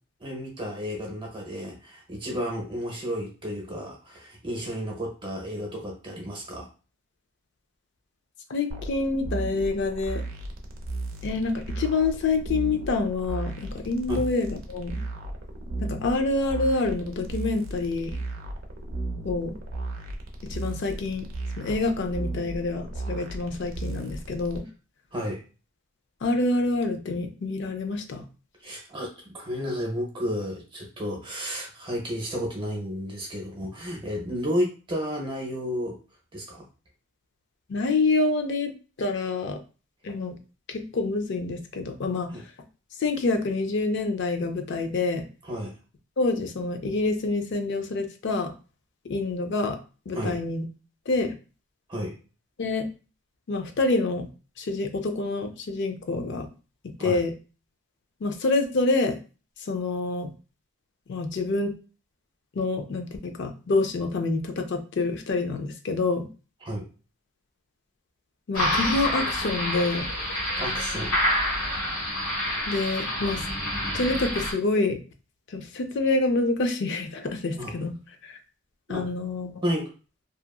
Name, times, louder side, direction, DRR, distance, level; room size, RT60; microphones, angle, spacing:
voice 1, 0.2-6.7 14.1-14.3 25.1-25.4 28.6-36.0 36.3-36.7 42.3-42.4 45.4-45.8 50.1-50.4 51.9-52.2 57.0-57.2 66.6-66.9 70.6-71.2 77.6-77.7 78.9-79.1 79.6-79.9, equal, 20° right, -1 dB, 0.7 m, -32 dB
voice 2, 8.5-10.2 11.2-15.0 15.8-18.1 19.2-19.6 20.4-21.3 21.6-24.6 26.2-28.2 37.7-39.6 40.0-40.4 40.7-42.3 43.0-45.3 46.2-48.5 49.1-49.8 50.1-50.6 51.1-51.3 52.6-52.9 53.5-54.3 54.6-56.5 56.8-57.3 58.2-59.2 59.6-60.3 61.1-61.7 62.5-66.3 68.5-70.1 72.7-73.4 73.9-75.0 75.5-77.9 78.2-78.4 78.9-79.5, left 3 dB, 50° left, 6 dB, 0.4 m, -27 dB
sound 1, 8.7-24.6, right 2 dB, 65° right, 0.5 m, -35 dB
sound 2, 68.5-74.5, equal, 70° left, 1.4 m, -28 dB
2.7 x 2.4 x 2.3 m, 0.35 s
head